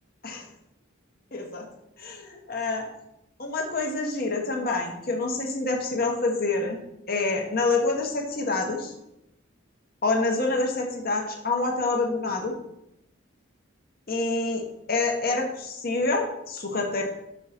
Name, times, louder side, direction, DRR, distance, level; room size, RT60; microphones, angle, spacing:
voice 1, 1.3-1.6 2.0-2.9 3.4-6.8 7.1-8.9 10.0-12.5 14.1-14.6 14.9-17.0, left 3 dB, 50° left, 1 dB, 1.1 m, -27 dB
5.6 x 3.8 x 5.8 m, 0.84 s
head